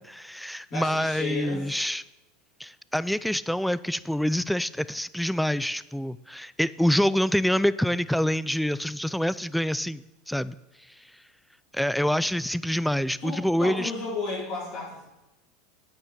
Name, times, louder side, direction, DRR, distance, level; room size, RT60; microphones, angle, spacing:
voice 1, 0.0-2.0 2.6-10.6 11.7-13.9, equal, ahead, 17 dB, 0.3 m, -26 dB
voice 2, 0.7-1.7 13.2-15.0, left 3 dB, 50° left, -5 dB, 3.8 m, -33 dB
8.4 x 6.6 x 5.9 m, 0.99 s
hypercardioid pair, 95°, 0 cm